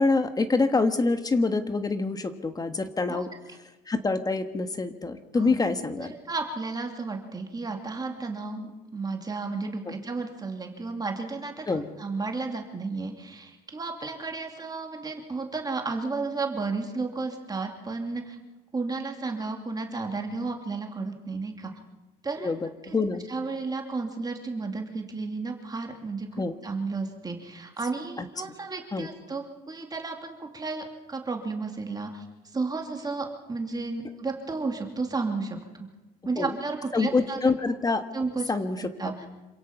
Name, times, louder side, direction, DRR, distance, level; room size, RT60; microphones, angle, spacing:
voice 1, 0.0-3.3 3.9-6.1 11.7-11.9 22.4-23.2 26.4-26.6 28.2-28.3 28.9-29.1 36.4-36.5 36.9-38.0 38.5-38.9, left 3 dB, 20° left, 9 dB, 1.4 m, -26 dB
voice 2, 6.0-18.4 18.7-21.7 22.2-22.5 22.8-23.0 23.3-32.3 32.5-35.9 36.2-37.4 38.1-38.5 38.8-39.3, right 3 dB, 25° right, 3 dB, 2.7 m, -33 dB
27.0 x 16.5 x 5.9 m, 1.1 s
cardioid pair, 110°, 17 cm